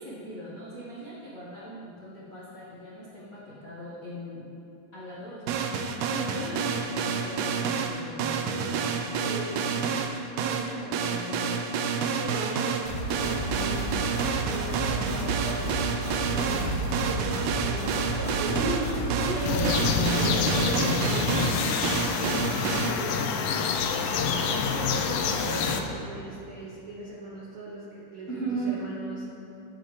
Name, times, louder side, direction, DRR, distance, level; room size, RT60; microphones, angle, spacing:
voice 1, 0.0-4.5 4.9-5.8 6.1-9.0 10.4-11.8 18.5-20.4 28.3-28.8, right 1 dB, 70° left, -8 dB, 0.8 m, -37 dB
sound 1, 5.5-22.9, right 6 dB, 85° right, 1.7 m, -29 dB
voice 2, 9.2-9.6 12.0-14.0 14.4-18.9 19.3-19.8 20.1-23.6 24.0-29.4, right 1 dB, 65° right, -6 dB, 1.3 m, -38 dB
sound 2, 12.8-20.3, right 1 dB, 20° right, 1.7 m, -32 dB
sound 3, 19.5-25.8, left 5 dB, 85° left, 2.3 m, -27 dB
11.5 x 8.4 x 3.2 m, 2.8 s
omnidirectional pair, 3.8 m